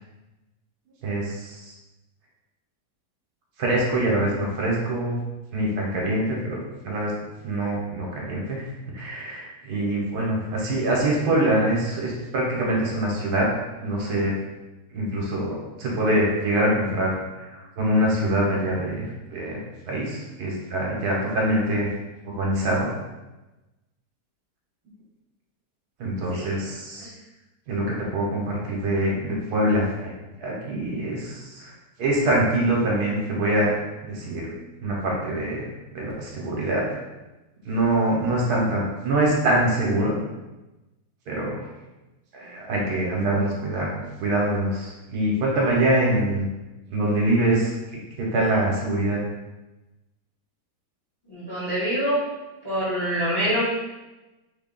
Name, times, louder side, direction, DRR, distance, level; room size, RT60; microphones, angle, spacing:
voice 1, 1.0-1.6 3.6-5.2 5.5-7.1 7.4-8.6 8.9-13.5 13.8-14.3 14.9-17.1 17.5-19.0 19.3-19.6 19.9-21.9 22.3-22.9 26.0-27.1 27.7-27.9 28.1-29.9 30.4-31.7 32.0-33.8 34.1-34.5 34.8-36.8 37.6-40.2 41.3-41.6 42.3-46.5 46.9-47.7 48.2-49.2, right 1 dB, 70° right, -3 dB, 1.3 m, -24 dB
voice 2, 26.3-26.7 51.3-52.2 52.6-53.6, equal, 20° left, -8 dB, 0.7 m, -25 dB
3.5 x 2.2 x 3.7 m, 1.1 s
omnidirectional pair, 1.8 m